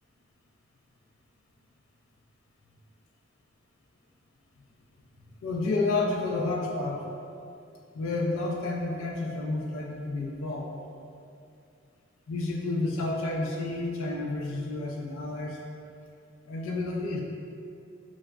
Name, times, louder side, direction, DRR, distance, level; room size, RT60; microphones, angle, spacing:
voice 1, 5.4-7.0 7.9-10.7 12.3-15.6 16.5-17.2, left 2 dB, 90° left, 0 dB, 0.3 m, -30 dB
3.2 x 2.0 x 2.3 m, 2.5 s
head